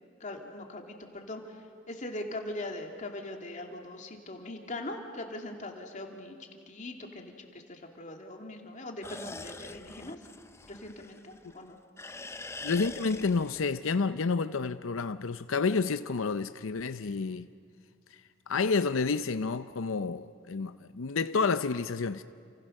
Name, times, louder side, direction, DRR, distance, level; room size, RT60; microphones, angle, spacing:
voice 1, 0.2-6.4 6.7-10.2 10.7-11.8, left 1 dB, 40° left, 2.6 m, -41 dB
sound 1, 9.0-11.6 12.0-13.8, left 3 dB, 15° left, 0.6 m, -44 dB
voice 2, 12.6-17.5 18.1-18.2 18.5-22.2, left 4 dB, 75° left, 0.6 m, -29 dB
30.0 x 27.5 x 6.5 m
head